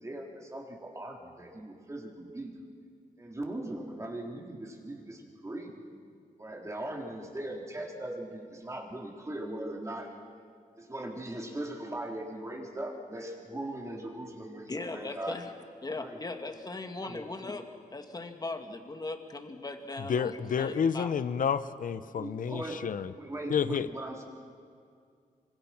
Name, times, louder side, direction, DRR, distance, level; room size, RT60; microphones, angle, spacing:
voice 1, 0.0-2.5 3.2-5.8 6.4-10.1 10.8-15.4 15.9-16.2 17.0-17.2 22.2-22.9 23.1-24.2, right 1 dB, 20° right, 0 dB, 3.8 m, -39 dB
voice 2, 14.7-15.5 15.8-17.6 17.9-21.1, left 2 dB, 25° left, 6 dB, 2.0 m, -39 dB
voice 3, 20.1-23.1 23.5-23.9, left 7 dB, 65° left, 14 dB, 0.9 m, -30 dB
26.5 x 25.0 x 6.1 m, 2.2 s
wide cardioid pair, 115°, 15 cm